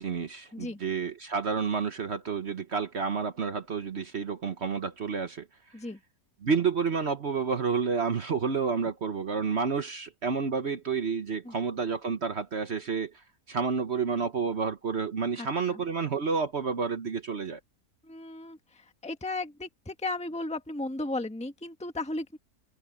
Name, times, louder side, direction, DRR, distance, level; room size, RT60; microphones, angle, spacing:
voice 1, 0.0-5.5 6.4-13.1 13.5-17.6, right 5 dB, 50° right, 1.2 m, -30 dB
voice 2, 15.4-15.8 18.0-22.4, left 2 dB, 5° left, 1.4 m, -35 dB
omnidirectional pair, 1.6 m